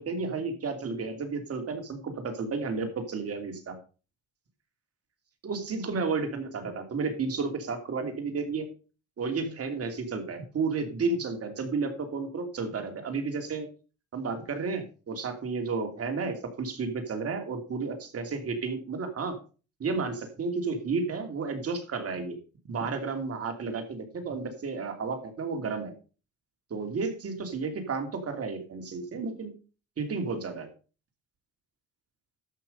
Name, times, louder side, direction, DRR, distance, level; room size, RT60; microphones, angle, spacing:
voice 1, 0.0-3.8 5.4-8.7 9.2-13.7 14.1-19.3 19.8-22.4 22.7-25.9 26.7-29.5 30.0-30.7, right 4 dB, 50° right, 6 dB, 2.8 m, -32 dB
13.0 x 6.0 x 5.3 m, 0.35 s
cardioid pair, 90°, 30 cm